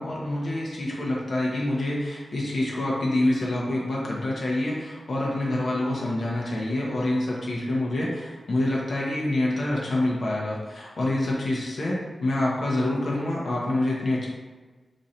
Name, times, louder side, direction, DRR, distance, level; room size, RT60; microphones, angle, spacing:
voice 1, 0.0-14.3, left 1 dB, 60° left, -4 dB, 0.7 m, -26 dB
3.0 x 2.6 x 4.1 m, 1.3 s
wide cardioid pair, 130°, 0 cm